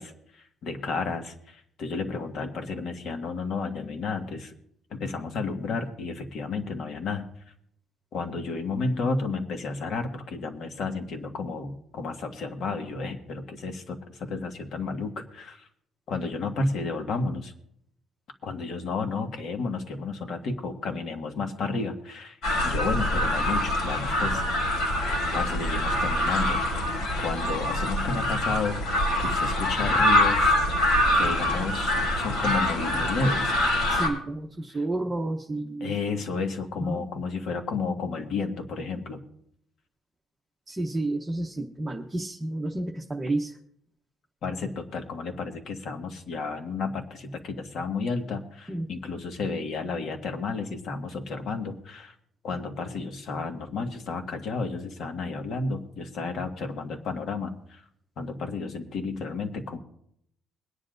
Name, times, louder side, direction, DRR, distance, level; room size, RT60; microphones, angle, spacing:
voice 1, 0.0-4.5 4.9-7.2 8.1-15.7 16.1-17.5 18.4-22.4 22.6-24.4 25.3-26.7 27.2-30.6 31.1-33.5 34.7-34.8 35.8-39.2 44.4-52.1 52.4-57.9 58.2-59.8, left 4 dB, 55° left, 5 dB, 1.6 m, -32 dB
sound 1, 22.4-34.1, left 1 dB, 90° left, 4.1 m, -25 dB
voice 2, 33.9-35.9 36.8-37.0 40.7-43.6 48.7-48.8, right 2 dB, 15° right, 0 dB, 0.9 m, -30 dB
23.0 x 9.9 x 2.6 m, 0.69 s
cardioid pair, 155°, 0 cm